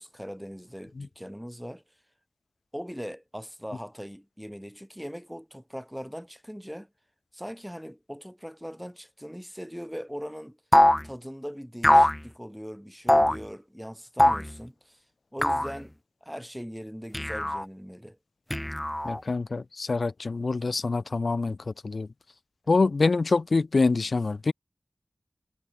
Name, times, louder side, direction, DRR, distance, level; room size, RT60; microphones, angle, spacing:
voice 1, 0.0-1.8 2.7-6.9 7.3-10.6 11.0-15.0 15.3-15.9 16.2-18.2, equal, ahead, 3.3 m, -40 dB
sound 1, 10.7-11.1 11.8-12.2 13.1-13.4 14.2-14.5 15.4-15.7 17.1-17.7 18.5-19.2, left 1 dB, 15° left, 0.5 m, -21 dB
voice 2, 19.0-21.6 21.8-22.1 22.7-24.5, left 3 dB, 85° left, 0.4 m, -25 dB
wide cardioid pair, 65°, 0 cm